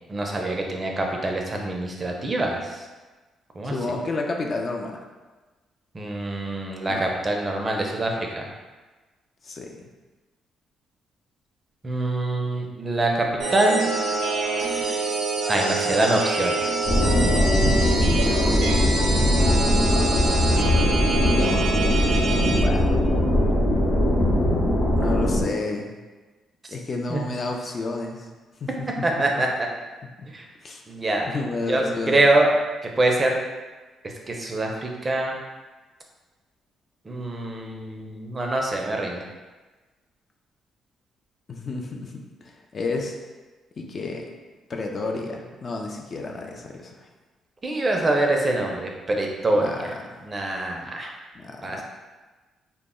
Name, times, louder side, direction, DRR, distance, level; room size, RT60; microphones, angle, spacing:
voice 1, 0.1-2.6 3.6-3.7 5.9-8.5 11.8-13.9 15.5-16.9 27.1-27.2 29.0-29.5 30.3-30.5 30.9-31.3 31.7-32.5 33.0-33.4 34.3-35.4 37.1-39.2 47.6-49.6 50.3-51.1 51.6-51.8, right 2 dB, 30° right, 1 dB, 0.4 m, -24 dB
voice 2, 3.6-5.0 6.9-7.1 9.4-9.8 18.8-21.0 22.6-23.1 24.9-25.9 26.7-28.3 28.6-29.3 30.2-30.3 30.6-30.8 31.2-32.2 41.5-43.2 43.8-44.3 44.7-47.1 49.5-50.2 51.3-51.8, left 3 dB, 45° left, 1 dB, 0.3 m, -31 dB
sound 1, 13.4-22.6, right 3 dB, 85° right, 0.5 m, -26 dB
sound 2, 16.8-25.4, left 1 dB, 60° left, 0.7 m, -20 dB
2.1 x 2.0 x 3.6 m, 1.3 s
cardioid pair, 90°, 0 cm